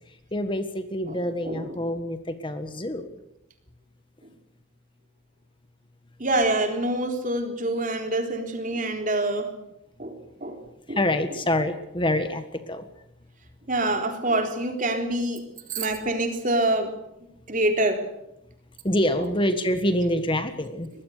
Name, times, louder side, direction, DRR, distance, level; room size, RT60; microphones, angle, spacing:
voice 1, 0.3-3.1 10.9-12.8 18.8-20.9, left 1 dB, 25° left, 9 dB, 1.5 m, -26 dB
voice 2, 6.2-9.5 10.0-10.6 10.9-11.0 13.7-16.9 17.5-18.1, right 1 dB, 40° right, 5 dB, 3.8 m, -26 dB
24.0 x 20.0 x 6.7 m, 0.84 s
head